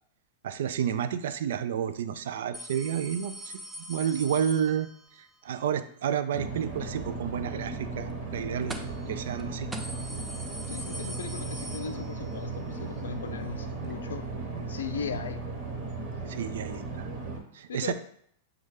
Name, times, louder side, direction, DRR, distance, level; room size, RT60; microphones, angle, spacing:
voice 1, 0.4-3.6 3.9-4.9 5.2-9.7 16.3-17.1 17.5-17.9, right 8 dB, 65° right, 11 dB, 0.3 m, -30 dB
sound 1, 2.5-5.2 8.7-9.1 9.4-9.5 9.7-12.4 12.8-12.9 13.9-14.0, equal, 10° right, 0.5 m, -42 dB
sound 2, 6.3-17.4, right 3 dB, 40° right, 1.2 m, -36 dB
voice 2, 10.7-14.3 14.7-15.4 17.7-17.9, left 6 dB, 75° left, 9 dB, 0.4 m, -37 dB
6.1 x 2.3 x 3.2 m, 0.65 s
figure-of-eight pair, 100°, 0 cm